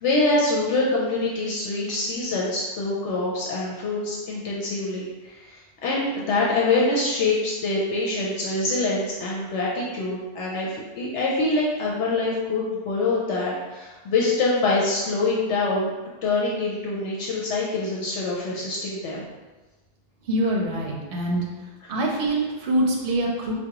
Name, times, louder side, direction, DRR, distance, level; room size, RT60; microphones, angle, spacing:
voice 1, 0.0-15.9 16.2-19.2, left 2 dB, 80° left, -4 dB, 0.9 m, -25 dB
voice 2, 20.3-21.4 21.9-23.5, right 1 dB, 60° right, -2 dB, 0.8 m, -24 dB
4.7 x 2.2 x 2.9 m, 1.2 s
omnidirectional pair, 1.2 m